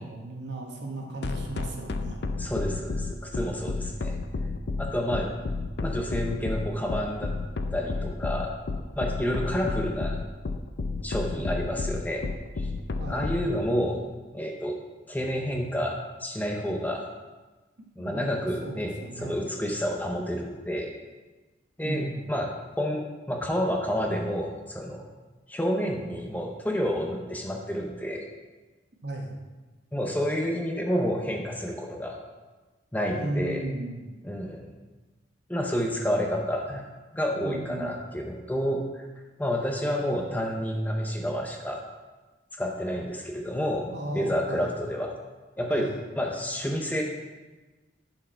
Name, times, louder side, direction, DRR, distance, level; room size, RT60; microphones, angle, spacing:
voice 1, 0.0-2.3 9.3-9.4 11.3-11.7 13.0-13.3 18.0-19.4 21.8-22.3 29.0-29.3 33.1-34.2 37.4-38.0 43.9-44.7 45.7-45.9, right 1 dB, 65° right, 0 dB, 1.3 m, -36 dB
sound 1, 1.2-13.5, left 3 dB, 60° left, 0.5 m, -31 dB
voice 2, 2.4-4.2 4.8-5.3 5.8-7.3 7.7-8.5 9.0-10.2 11.0-12.3 12.6-12.7 13.1-14.0 14.3-14.8 15.1-17.0 18.0-20.9 21.8-22.5 22.8-25.1 25.5-28.2 29.9-32.2 32.9-33.6 34.2-34.7 35.5-36.8 37.1-39.1 39.4-41.8 42.6-45.1 45.6-45.9 46.2-47.0, equal, 10° left, 1 dB, 0.7 m, -29 dB
11.0 x 4.6 x 4.4 m, 1.2 s
head